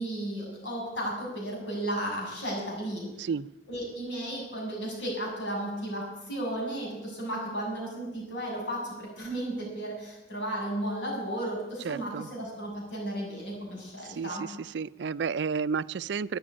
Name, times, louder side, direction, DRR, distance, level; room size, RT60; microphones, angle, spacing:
voice 1, 0.0-3.1 3.7-14.5, right 1 dB, 80° left, -3 dB, 7.2 m, -34 dB
voice 2, 11.8-12.3 14.0-16.4, right 5 dB, 65° right, 18 dB, 0.4 m, -32 dB
12.5 x 9.5 x 9.8 m, 1.0 s
head